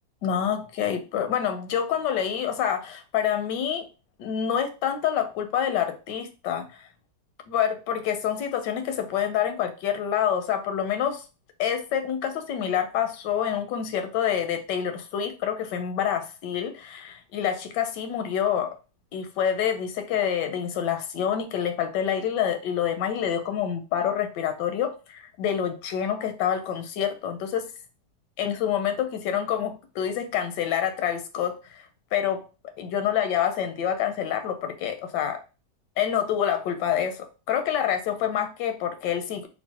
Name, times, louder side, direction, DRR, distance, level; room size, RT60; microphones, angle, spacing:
voice 1, 0.2-3.9 4.2-6.8 7.5-11.2 11.6-18.8 19.1-27.6 28.4-31.9 32.1-32.4 32.8-35.4 36.0-39.5, left 9 dB, 85° left, 8 dB, 1.2 m, -27 dB
4.6 x 2.1 x 2.7 m, 0.32 s
omnidirectional pair, 1.8 m